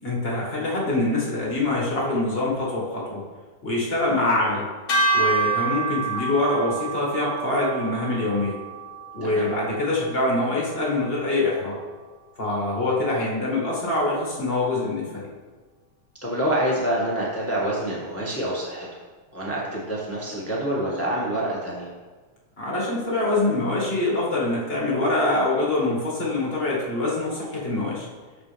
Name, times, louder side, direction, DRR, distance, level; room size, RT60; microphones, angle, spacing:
voice 1, 0.0-3.2 3.6-4.6 5.1-8.6 9.1-11.8 12.4-15.3 22.6-28.1, left 2 dB, 25° left, -4 dB, 1.8 m, -24 dB
sound 1, 4.9-11.2, right 3 dB, 70° left, 0.7 m, -28 dB
voice 2, 16.2-19.0 19.3-21.9, right 1 dB, 5° left, -5 dB, 1.1 m, -27 dB
13.5 x 5.9 x 3.5 m, 1.4 s
omnidirectional pair, 3.4 m